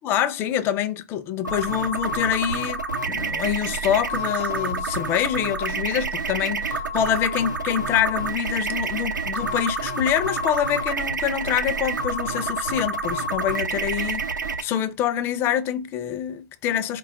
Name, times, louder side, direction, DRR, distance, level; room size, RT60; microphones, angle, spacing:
voice 1, 0.0-14.3 14.6-17.0, left 10 dB, 25° left, 0.4 m, -25 dB
sound 1, 1.4-14.6, right 3 dB, 90° right, 0.7 m, -28 dB
4.1 x 2.3 x 3.6 m
hypercardioid pair, 125°, 10 cm